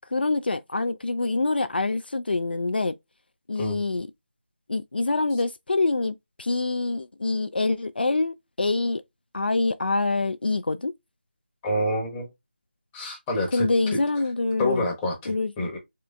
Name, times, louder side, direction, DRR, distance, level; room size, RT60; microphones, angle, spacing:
voice 1, 0.1-3.0 3.5-4.1 4.7-9.0 9.3-10.9 13.5-14.9 15.3-15.7, left 3 dB, 55° left, 0.4 m, -25 dB
voice 2, 11.6-12.3 12.9-13.7 14.6-15.8, left 1 dB, 10° left, 0.9 m, -27 dB
3.7 x 3.3 x 3.3 m
figure-of-eight pair, 165°, 6 cm